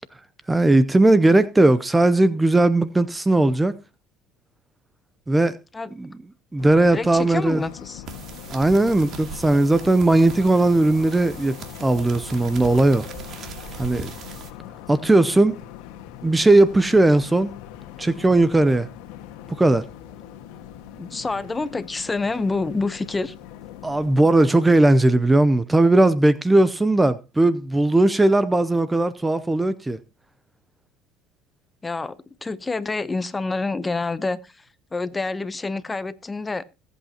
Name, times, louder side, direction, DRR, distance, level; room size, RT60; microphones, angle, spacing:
voice 1, 0.5-3.8 5.3-5.6 6.0-6.1 6.5-7.6 8.5-13.1 13.8-14.1 14.9-15.6 16.2-17.5 18.0-18.9 19.6-19.9 23.8-30.0, right 2 dB, 10° right, 0.6 m, -18 dB
sound 1, 6.6-24.5, left 11 dB, 75° left, 1.5 m, -41 dB
voice 2, 6.9-8.0 21.0-23.3 31.8-34.7 34.9-36.6, left 3 dB, 15° left, 0.8 m, -27 dB
sound 2, 8.1-14.5, right 5 dB, 45° right, 2.3 m, -39 dB
21.0 x 8.3 x 2.9 m
supercardioid pair, 115°, 0 cm